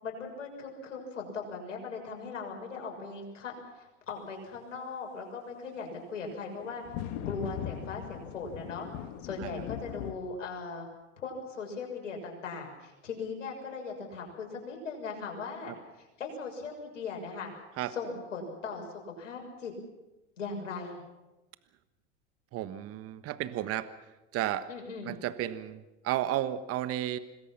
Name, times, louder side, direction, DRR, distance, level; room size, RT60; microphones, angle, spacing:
voice 1, 0.0-6.8 7.2-8.9 9.2-10.9 11.2-17.5 17.9-19.7 20.4-21.0 24.7-25.1, left 4 dB, 85° left, 2 dB, 6.6 m, -39 dB
sound 1, 6.2-6.3 6.5-10.1, left 10 dB, 55° left, 2.3 m, -39 dB
voice 2, 22.5-23.9 24.3-24.7 25.0-27.2, right 13 dB, 40° right, 13 dB, 1.3 m, -33 dB
26.0 x 20.5 x 5.9 m, 1.0 s
hypercardioid pair, 95°, 37 cm